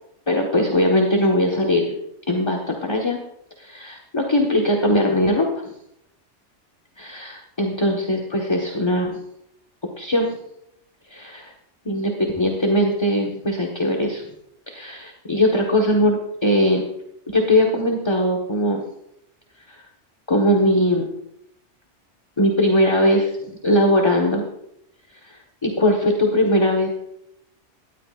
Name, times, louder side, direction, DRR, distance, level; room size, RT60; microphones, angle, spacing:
voice 1, 0.3-1.8 2.3-3.2 3.6-5.6 7.0-9.2 10.0-10.4 11.1-11.5 11.8-14.2 14.7-16.8 17.3-18.9 19.7-19.8 20.3-21.0 22.4-24.5 25.2-26.9, left 1 dB, 25° left, 0 dB, 1.4 m, -20 dB
18.5 x 13.5 x 2.5 m, 0.79 s
omnidirectional pair, 1.2 m